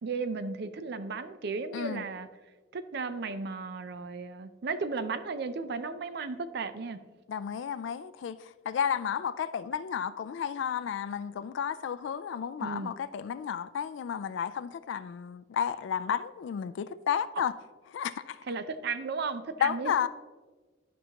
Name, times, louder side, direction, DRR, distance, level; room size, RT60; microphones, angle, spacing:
voice 1, 0.0-2.3 2.7-7.0 12.6-12.9 17.4-17.5 18.4-19.9, right 4 dB, 65° right, 0.5 m, -35 dB
voice 2, 7.3-17.5 17.9-18.4 19.6-20.1, left 8 dB, 85° left, 0.3 m, -32 dB
11.5 x 5.5 x 2.9 m
head